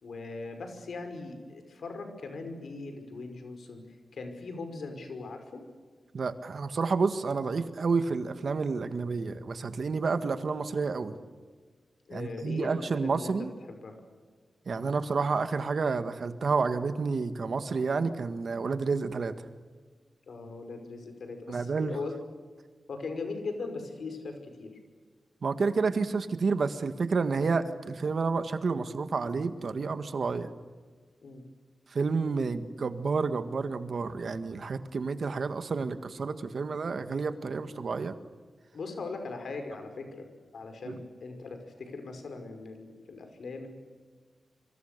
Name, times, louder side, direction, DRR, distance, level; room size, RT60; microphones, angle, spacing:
voice 1, 0.0-3.8 4.1-5.6 12.1-13.3 13.7-14.0 14.7-15.0 20.3-22.2 22.9-24.7 31.2-31.4 38.7-40.3 40.5-43.7, left 3 dB, 85° left, 6 dB, 5.5 m, -40 dB
voice 2, 6.1-11.2 12.1-13.5 14.7-19.3 21.5-21.9 25.4-30.5 31.9-38.1 40.9-41.0, right 4 dB, 65° right, 10 dB, 1.8 m, -30 dB
27.5 x 24.5 x 6.9 m, 1.5 s
wide cardioid pair, 105°, 0 cm